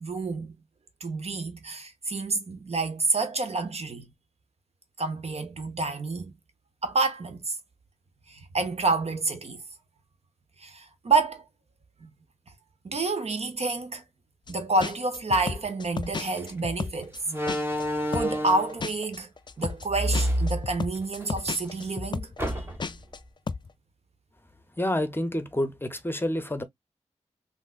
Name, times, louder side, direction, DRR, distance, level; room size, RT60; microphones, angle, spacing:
voice 1, 0.0-0.5 1.0-4.0 5.0-6.3 6.8-7.5 8.3-9.6 10.6-11.4 12.0-12.1 12.8-14.0 14.5-17.1 18.1-19.3 19.6-22.6, right 3 dB, 60° right, 0.8 m, -28 dB
sound 1, 14.5-14.6 14.8-17.9 18.1-23.2 23.5-23.7, left 4 dB, 40° left, 0.3 m, -33 dB
Slam, 16.2-16.4 17.3-18.8 19.9-21.3 21.6-21.7 22.4-23.0, equal, 20° right, 1.1 m, -29 dB
voice 2, 24.8-26.6, left 1 dB, 20° left, 0.7 m, -28 dB
3.4 x 2.6 x 2.4 m
cardioid pair, 55°, 12 cm